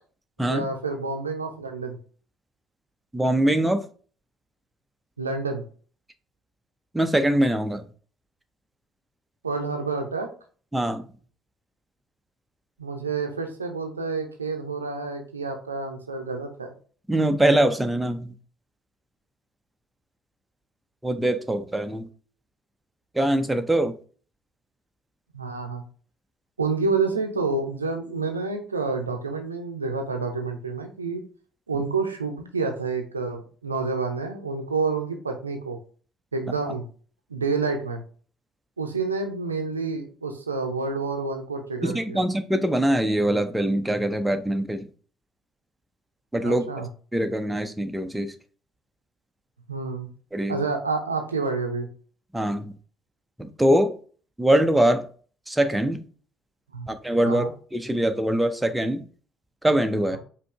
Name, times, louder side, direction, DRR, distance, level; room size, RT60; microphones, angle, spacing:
voice 1, 0.4-2.0 5.2-5.6 9.4-10.3 12.8-16.7 25.3-25.8 26.6-31.2 31.7-35.8 36.3-36.9 37.3-38.0 38.8-42.2 46.4-46.9 49.7-50.1 50.5-51.9 56.7-56.9 57.2-57.5, right 4 dB, 80° right, 0.5 m, -28 dB
voice 2, 3.1-3.8 6.9-7.8 10.7-11.1 17.1-18.3 21.0-22.1 23.1-23.9 41.8-44.8 46.3-46.9 47.1-48.3 50.3-50.6 52.3-52.7 53.4-54.0 54.4-55.1 55.5-56.0 56.9-59.0 59.6-60.2, right 1 dB, 5° right, 0.6 m, -23 dB
5.0 x 2.7 x 3.5 m
figure-of-eight pair, 50°, 0 cm